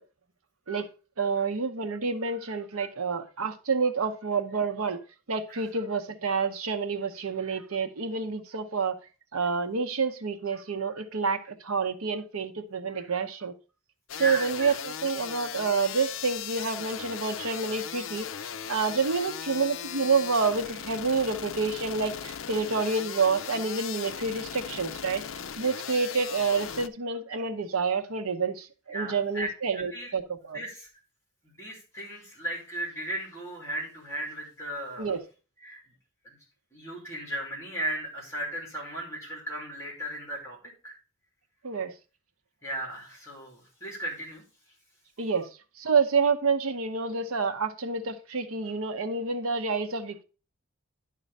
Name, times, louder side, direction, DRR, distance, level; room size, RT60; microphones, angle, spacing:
voice 1, 1.2-5.0 5.3-9.0 9.3-13.5 14.2-18.3 18.7-25.2 25.6-30.6 35.0-35.2 41.6-41.9 45.2-45.5 45.8-50.2, right 4 dB, 75° right, 0.8 m, -28 dB
sound 1, 14.1-26.9, left 8 dB, 60° left, 0.5 m, -38 dB
voice 2, 14.2-14.7 28.9-30.1 30.5-30.9 31.6-35.2 35.6-35.8 36.2-36.4 36.7-40.6 40.8-41.0 42.6-44.4, right 1 dB, 15° left, 2.7 m, -36 dB
11.0 x 3.9 x 5.3 m
head